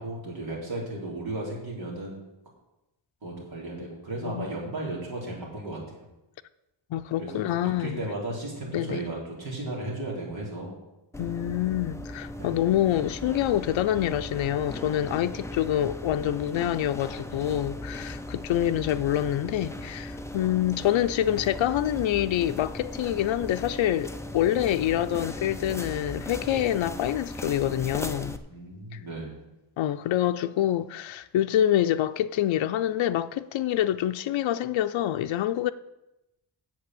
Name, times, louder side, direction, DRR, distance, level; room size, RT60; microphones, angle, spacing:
voice 1, 0.0-2.2 3.2-5.9 7.2-10.8 12.4-12.5 28.5-29.4, right 2 dB, 55° right, 3.7 m, -35 dB
voice 2, 6.9-8.1 8.7-9.0 11.2-28.4 28.9-29.0 29.8-35.7, left 12 dB, 90° left, 0.5 m, -26 dB
sound 1, 11.1-28.4, left 1 dB, 5° left, 0.5 m, -38 dB
8.5 x 7.5 x 7.7 m
wide cardioid pair, 175°, 44 cm